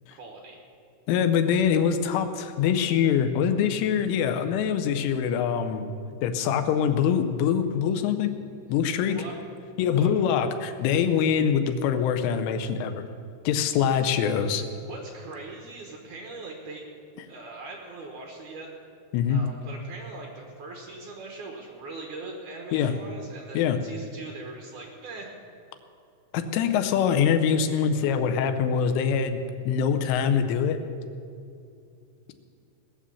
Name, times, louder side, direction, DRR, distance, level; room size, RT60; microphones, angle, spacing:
voice 1, 0.1-0.6 9.1-9.3 9.9-10.1 14.8-16.9 17.3-18.7 19.3-25.3, right 3 dB, 90° right, 0 dB, 1.7 m, -41 dB
voice 2, 1.1-5.9 6.2-8.3 8.7-9.2 9.8-13.0 13.5-14.6 19.1-19.4 22.7-22.9 23.6-23.8 26.3-30.8, left 7 dB, 85° left, 8 dB, 3.4 m, -24 dB
18.5 x 7.5 x 7.0 m, 2.5 s
omnidirectional pair, 5.5 m